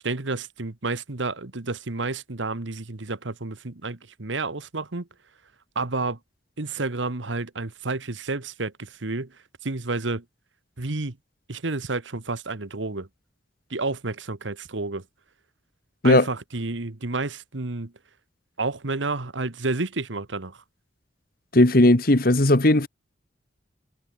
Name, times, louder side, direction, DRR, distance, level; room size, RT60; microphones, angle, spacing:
voice 1, 0.0-5.1 5.7-6.2 6.6-9.3 9.6-10.2 10.8-11.2 11.5-13.1 13.7-15.0 16.0-17.9 18.6-20.6, right 3 dB, 85° right, 1.5 m, -30 dB
voice 2, 21.5-22.9, left 1 dB, 50° left, 1.6 m, -17 dB
head